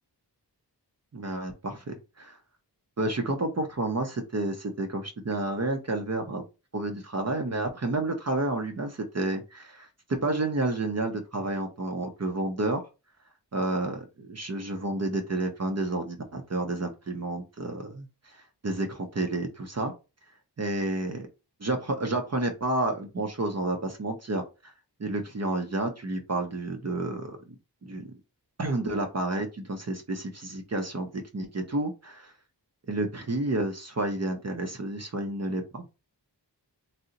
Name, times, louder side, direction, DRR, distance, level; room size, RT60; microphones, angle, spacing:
voice 1, 1.1-2.4 3.0-6.4 6.7-12.8 13.5-19.9 20.6-21.3 21.6-24.7 25.0-27.4 27.8-28.1 28.6-32.3 32.9-35.9, right 2 dB, 40° right, 5 dB, 0.5 m, -30 dB
2.7 x 2.0 x 3.8 m, 0.29 s
wide cardioid pair, 45°, 42 cm